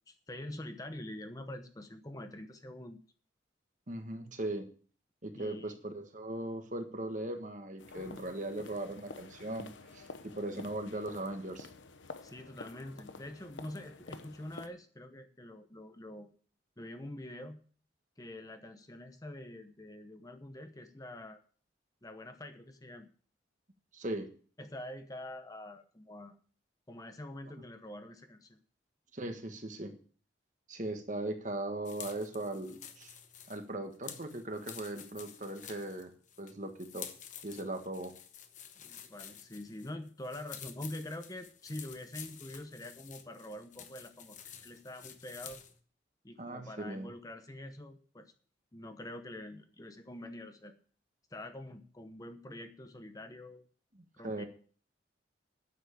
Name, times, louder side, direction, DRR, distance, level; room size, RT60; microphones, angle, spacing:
voice 1, 0.1-3.0 5.3-5.7 12.2-16.3 16.8-17.6 18.2-21.4 22.0-23.1 24.6-26.4 26.9-28.6 38.8-45.6 46.2-48.3 48.7-50.7 51.3-53.6 54.1-54.4, left 1 dB, 20° left, 7 dB, 0.9 m, -45 dB
voice 2, 3.9-4.7 5.2-11.7 23.9-24.3 29.1-29.9 30.7-33.1 33.5-36.1 36.4-37.1 37.4-38.1 46.4-47.1 53.9-54.5, right 1 dB, 40° right, 6 dB, 1.5 m, -39 dB
sound 1, 7.8-14.7, left 3 dB, 90° left, 1.0 m, -49 dB
sound 2, 31.8-45.8, left 9 dB, 40° left, 1.1 m, -50 dB
9.6 x 7.4 x 8.2 m, 0.43 s
head